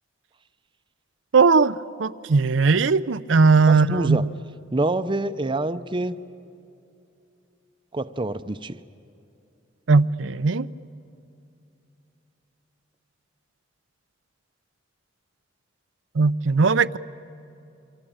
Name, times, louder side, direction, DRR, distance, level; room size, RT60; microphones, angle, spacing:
voice 1, 1.3-4.3 9.9-10.7 16.1-17.0, right 4 dB, 85° right, 12 dB, 0.6 m, -19 dB
voice 2, 3.7-4.2 4.7-6.2 7.9-8.8, right 2 dB, 25° right, 11 dB, 0.6 m, -26 dB
27.5 x 24.5 x 8.9 m, 2.7 s
head